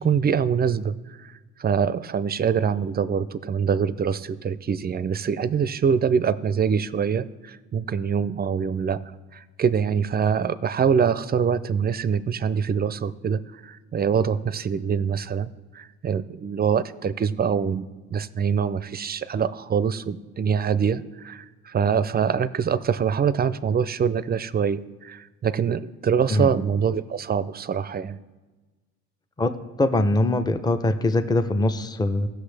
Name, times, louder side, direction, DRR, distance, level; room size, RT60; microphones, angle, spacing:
voice 1, 0.0-1.3 1.6-9.0 9.3-28.2, right 7 dB, 30° right, 16 dB, 0.4 m, -24 dB
voice 2, 29.8-32.3, left 2 dB, 15° left, 8 dB, 0.6 m, -22 dB
15.5 x 6.4 x 3.3 m, 1.3 s
cardioid pair, 90°, 30 cm